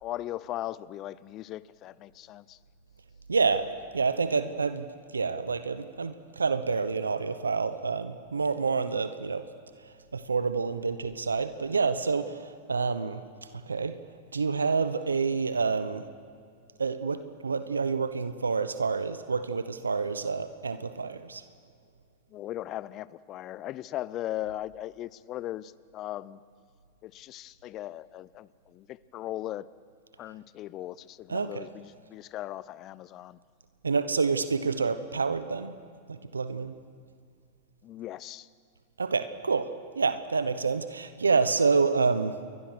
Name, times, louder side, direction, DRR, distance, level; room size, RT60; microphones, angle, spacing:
voice 1, 0.0-2.6 22.3-26.4 27.0-29.7 30.2-33.4 37.8-38.5, left 14 dB, 40° left, 20 dB, 0.7 m, -38 dB
voice 2, 3.3-4.9 5.1-9.5 9.8-13.2 13.5-14.0 14.3-16.1 16.8-21.4 31.3-31.6 33.8-35.7 36.1-36.7 39.0-42.4, right 4 dB, 90° right, 12 dB, 1.0 m, -28 dB
29.0 x 22.0 x 6.4 m, 2.2 s
hypercardioid pair, 100°, 0 cm